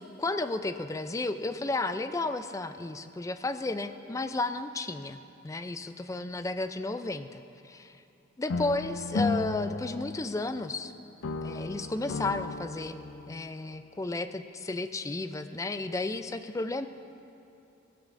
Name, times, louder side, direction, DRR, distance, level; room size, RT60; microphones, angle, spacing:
voice 1, 0.2-5.2 5.4-8.0 8.4-10.9 11.4-13.0 13.3-16.9, left 2 dB, 15° left, 10 dB, 0.3 m, -33 dB
sound 1, 8.5-10.9 11.2-13.5, left 3 dB, 80° left, 0.4 m, -34 dB
17.0 x 12.5 x 2.6 m, 2.8 s
head